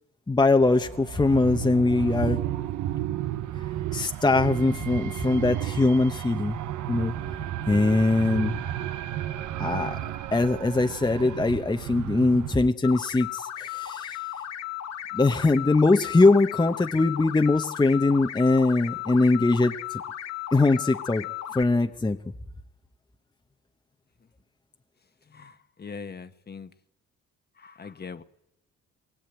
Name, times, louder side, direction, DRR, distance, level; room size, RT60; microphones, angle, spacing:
voice 1, 0.3-2.4 3.9-6.6 6.9-7.1 7.7-8.6 9.6-10.0 10.3-14.2 15.1-20.0 20.5-21.3 21.5-22.2, left 3 dB, 15° left, 0.9 m, -22 dB
sound 1, 0.6-12.6, right 12 dB, 80° right, 1.0 m, -32 dB
sound 2, 12.8-21.6, left 12 dB, 55° left, 1.3 m, -35 dB
voice 2, 25.3-26.7 27.6-28.2, left 5 dB, 35° left, 1.2 m, -41 dB
22.0 x 20.5 x 9.1 m
cardioid pair, 90°, 30 cm